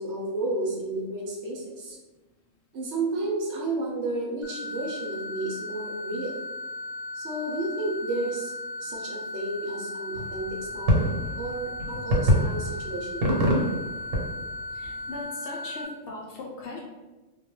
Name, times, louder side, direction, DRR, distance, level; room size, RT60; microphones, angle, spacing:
voice 1, 0.0-2.0 2.7-6.3 7.1-8.5 8.8-13.3, right 2 dB, 70° right, -2 dB, 0.8 m, -32 dB
sound 1, 4.4-15.9, left 2 dB, 30° right, 0.6 m, -36 dB
sound 2, 10.1-15.2, equal, 90° right, 1.1 m, -26 dB
voice 2, 14.7-16.8, left 2 dB, 70° left, -2 dB, 0.8 m, -39 dB
2.2 x 2.2 x 3.0 m, 1.1 s
omnidirectional pair, 1.3 m